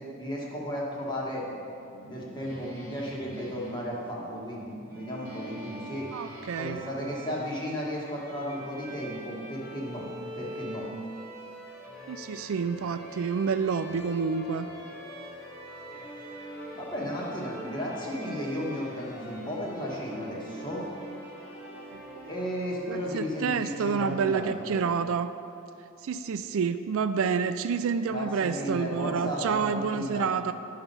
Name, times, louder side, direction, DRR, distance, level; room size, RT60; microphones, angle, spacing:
voice 1, 0.0-1.5 2.0-6.1 6.5-10.1 10.4-10.8 16.7-20.9 22.2-24.8 28.1-30.3, equal, 20° left, -4 dB, 1.7 m, -34 dB
Guitar, 1.0-6.8, left 1 dB, 90° left, 1.8 m, -51 dB
Bowed string instrument, 4.9-22.7, equal, 15° right, 1.7 m, -46 dB
voice 2, 6.1-6.8 12.1-14.7 21.9-22.3 22.9-25.3 26.0-30.5, right 6 dB, 70° right, 10 dB, 0.4 m, -29 dB
sound 1, 8.5-23.3, equal, 50° left, 1.3 m, -46 dB
9.9 x 5.8 x 5.5 m, 2.6 s
head